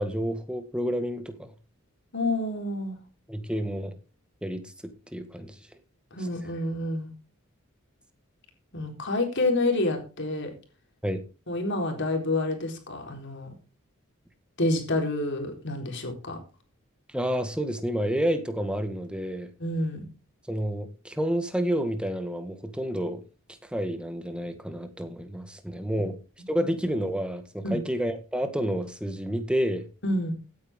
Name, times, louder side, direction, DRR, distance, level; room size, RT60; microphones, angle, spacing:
voice 1, 0.0-1.5 3.3-4.0 4.4-5.6 11.0-11.2 17.1-19.5 20.5-23.2 23.7-26.2 26.5-29.9, equal, 5° right, 8 dB, 1.7 m, -29 dB
voice 2, 2.1-3.0 6.1-7.1 8.7-10.5 11.5-13.5 14.6-16.4 19.6-20.0 26.5-26.7 27.6-27.8 30.0-30.3, left 2 dB, 55° left, 3 dB, 4.1 m, -28 dB
16.0 x 9.6 x 3.7 m, 0.33 s
head